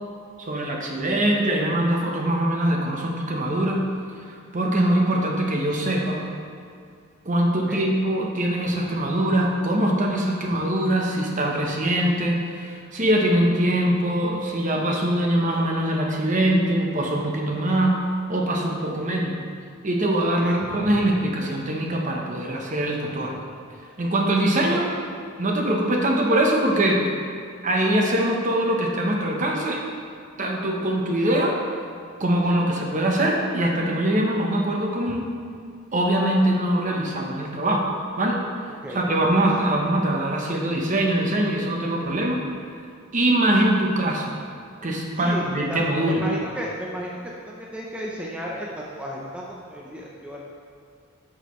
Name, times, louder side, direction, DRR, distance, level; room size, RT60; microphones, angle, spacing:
voice 1, 0.4-3.9 4.3-6.2 7.2-18.0 18.3-19.3 19.8-23.3 24.0-24.9 25.4-27.0 27.6-29.8 30.4-31.6 32.2-35.3 35.9-37.9 38.2-38.4 38.9-42.4 43.1-44.3 44.8-46.2, right 1 dB, 40° right, 0 dB, 0.9 m, -23 dB
voice 2, 20.4-21.1 35.1-35.2 38.8-39.0 45.2-50.4, equal, 5° right, -4 dB, 0.6 m, -34 dB
9.3 x 6.5 x 3.1 m, 2.3 s
head